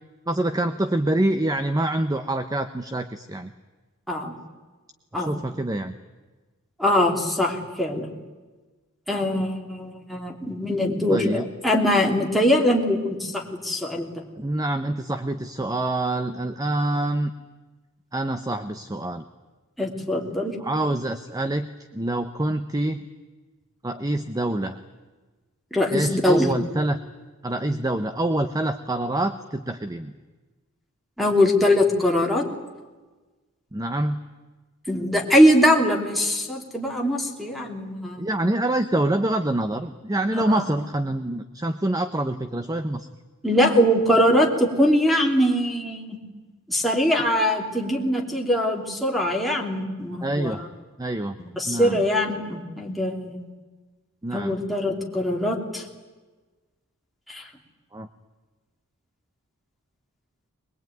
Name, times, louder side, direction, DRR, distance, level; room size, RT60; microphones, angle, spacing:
voice 1, 0.3-3.5 5.1-5.9 11.1-11.4 14.4-17.3 18.1-19.2 20.6-21.7 21.9-23.1 23.8-24.8 25.9-27.0 27.4-30.1 33.7-34.2 38.2-43.1 50.2-50.6 51.0-51.3 51.6-52.0 54.2-54.6 57.9-58.1, right 1 dB, 15° right, 9 dB, 0.8 m, -26 dB
voice 2, 4.1-4.4 5.1-5.3 6.8-8.1 9.1-14.2 19.8-20.6 25.7-26.5 31.2-32.5 34.9-38.2 40.3-40.6 43.4-46.2 46.7-50.7 51.6-53.4 54.3-55.8 57.3-57.5, left 1 dB, ahead, -1 dB, 3.0 m, -22 dB
22.0 x 21.5 x 9.3 m, 1.3 s
head